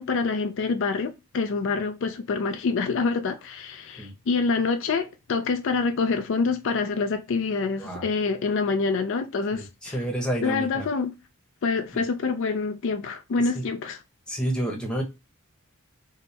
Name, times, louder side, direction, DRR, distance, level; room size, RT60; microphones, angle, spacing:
voice 1, 0.0-10.0 10.4-11.1 11.6-14.0, left 4 dB, 60° left, 0.4 m, -26 dB
voice 2, 9.5-10.9 11.9-12.0 13.6-13.7 14.3-15.0, right 1 dB, 5° left, 0.9 m, -29 dB
4.2 x 2.1 x 3.3 m
head